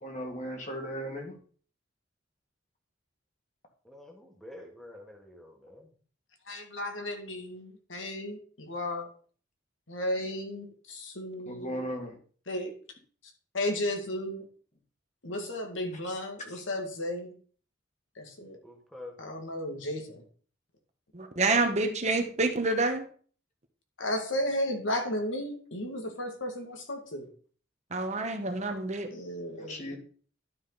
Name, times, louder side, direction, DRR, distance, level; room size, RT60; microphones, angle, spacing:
voice 1, 0.0-1.4 11.5-12.2 16.1-16.2 29.6-30.0, equal, 40° left, 2 dB, 1.9 m, -37 dB
voice 2, 3.8-5.9 18.6-19.1, left 1 dB, ahead, 0 dB, 1.5 m, -48 dB
voice 3, 6.5-9.1 9.9-11.9 12.5-12.7 13.5-14.5 15.2-17.3 18.2-18.6 19.2-20.2 24.0-27.3 29.1-30.0, left 1 dB, 90° left, 3 dB, 2.0 m, -34 dB
voice 4, 21.1-23.0 27.9-29.1, right 3 dB, 35° right, 5 dB, 1.1 m, -27 dB
11.5 x 5.1 x 4.0 m, 0.44 s
head